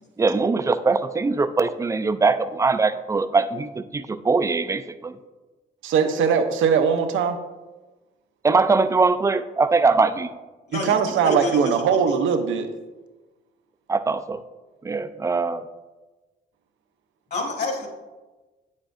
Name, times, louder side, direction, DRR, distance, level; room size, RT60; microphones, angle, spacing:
voice 1, 0.2-5.2 8.4-10.3 13.9-14.4 14.8-15.6, right 4 dB, 15° right, 11 dB, 0.4 m, -21 dB
voice 2, 5.8-7.4 10.7-12.7, right 6 dB, 80° right, 7 dB, 0.7 m, -21 dB
voice 3, 10.7-11.7 17.3-17.9, left 2 dB, 55° left, 1 dB, 1.9 m, -28 dB
8.7 x 7.3 x 2.6 m, 1.2 s
cardioid pair, 90°, 20 cm